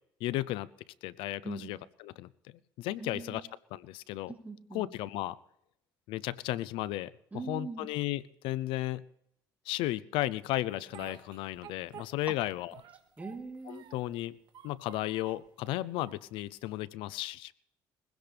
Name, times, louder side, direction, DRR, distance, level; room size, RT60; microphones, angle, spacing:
voice 1, 0.2-0.7 1.0-3.4 3.7-4.3 4.7-5.4 6.1-7.1 7.5-9.0 9.7-12.7 13.7-14.4 14.6-17.5, left 16 dB, 85° left, 19 dB, 0.6 m, -34 dB
voice 2, 3.0-3.4 4.3-4.9 7.3-7.9 13.2-13.8, right 3 dB, 15° right, 2 dB, 3.2 m, -41 dB
Speech, 10.7-12.4 12.7-14.1 14.5-15.5 16.0-16.8, right 9 dB, 65° right, 1.8 m, -52 dB
21.5 x 16.5 x 3.4 m, 0.75 s
cardioid pair, 100°, 9 cm